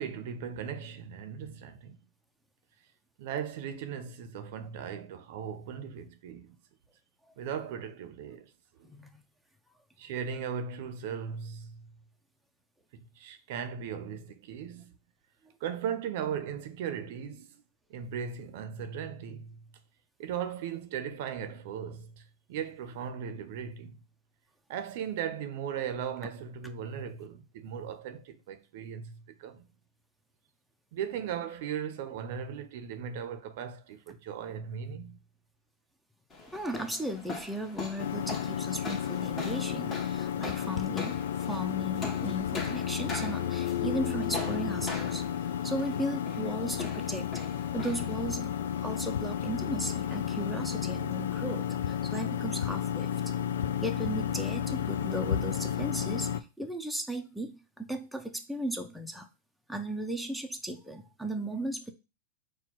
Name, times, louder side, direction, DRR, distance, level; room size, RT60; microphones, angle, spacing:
voice 1, 0.0-2.0 3.2-6.6 7.4-8.5 8.8-8.9 10.0-11.8 12.9-15.0 15.6-17.6 17.9-19.6 20.2-24.0 24.7-29.7 30.9-35.2, right 8 dB, 60° right, 0.6 m, -37 dB
sound 1, 36.3-50.6, left 2 dB, 20° left, 1.0 m, -43 dB
voice 2, 36.5-47.3 47.7-48.6 48.8-53.1 53.8-59.3 59.7-61.9, right 1 dB, ahead, 0.5 m, -36 dB
sound 2, 38.0-56.4, left 9 dB, 80° left, 0.3 m, -32 dB
4.3 x 2.2 x 4.4 m
hypercardioid pair, 130°, 0 cm